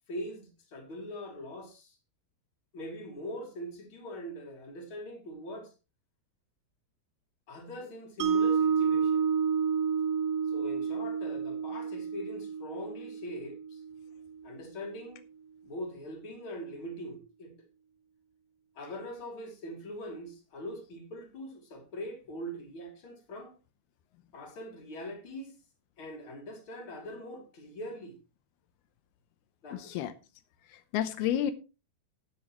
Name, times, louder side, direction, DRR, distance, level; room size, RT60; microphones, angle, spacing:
voice 1, 0.1-2.0 2.7-5.7 7.5-9.3 10.5-13.8 14.4-15.2 15.6-17.5 18.8-23.6 24.3-25.5 26.0-28.2 29.6-30.0, equal, 35° left, 3.5 m, -42 dB
Mallet percussion, 8.2-14.4, right 6 dB, 50° right, 2.1 m, -30 dB
voice 2, 29.7-30.1 30.7-31.5, left 10 dB, 85° left, 2.9 m, -31 dB
14.0 x 10.0 x 3.1 m
omnidirectional pair, 4.4 m